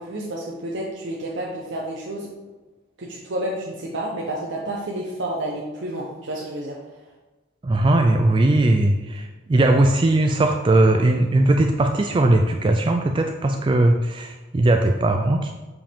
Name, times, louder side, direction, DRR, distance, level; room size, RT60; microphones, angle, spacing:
voice 1, 0.0-2.3 3.0-7.1, right 1 dB, 75° right, -3 dB, 0.9 m, -30 dB
voice 2, 7.6-15.5, right 2 dB, 25° right, 4 dB, 0.3 m, -19 dB
7.4 x 4.8 x 3.5 m, 1.2 s
head